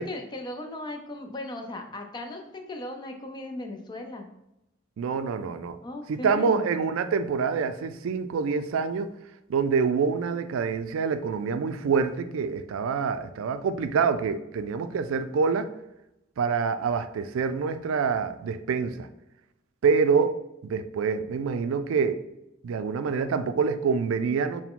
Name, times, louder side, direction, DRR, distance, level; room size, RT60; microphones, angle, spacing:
voice 1, 0.0-4.3 5.8-6.6, left 1 dB, 20° left, 4 dB, 0.4 m, -37 dB
voice 2, 5.0-5.8 6.1-9.1 9.5-15.7 16.4-19.1 19.8-22.2 22.6-24.6, right 5 dB, 90° right, 11 dB, 0.3 m, -26 dB
4.6 x 2.1 x 3.6 m, 0.86 s
head